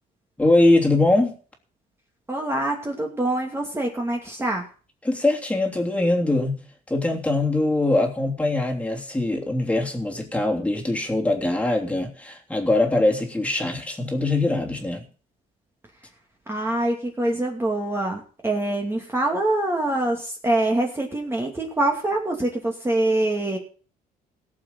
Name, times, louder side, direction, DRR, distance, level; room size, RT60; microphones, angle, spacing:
voice 1, 0.4-1.3 5.0-6.6 6.9-15.0, left 2 dB, 10° left, 3.1 m, -22 dB
voice 2, 2.3-4.6 16.5-23.6, right 1 dB, 15° right, 2.5 m, -25 dB
17.5 x 7.2 x 5.6 m
cardioid pair, 110°, 17 cm